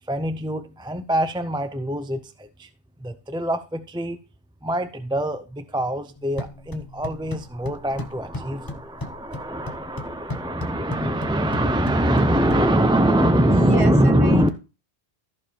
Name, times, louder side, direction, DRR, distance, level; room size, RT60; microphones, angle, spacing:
voice 1, 0.1-2.7 3.0-4.2 4.6-14.5, right 1 dB, 5° right, 0.4 m, -23 dB
sound 1, 6.2-13.2, left 2 dB, 20° left, 0.8 m, -37 dB
voice 2, 13.5-14.5, right 1 dB, 30° right, 1.4 m, -30 dB
14.0 x 5.0 x 4.4 m
omnidirectional pair, 1.1 m